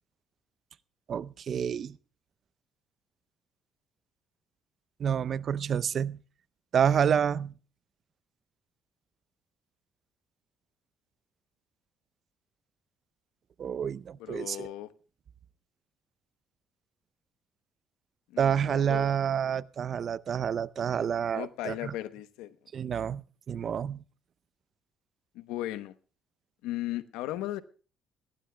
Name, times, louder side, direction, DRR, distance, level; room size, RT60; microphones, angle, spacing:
voice 1, 1.1-2.0 5.0-6.2 6.7-7.5 13.6-14.7 18.4-21.9 22.7-24.0, right 8 dB, 55° right, 0.5 m, -28 dB
voice 2, 14.2-14.9 18.3-19.1 21.3-22.6 25.3-26.0 26.6-27.6, left 15 dB, 90° left, 0.9 m, -36 dB
20.0 x 17.5 x 2.3 m
supercardioid pair, 80°, 0 cm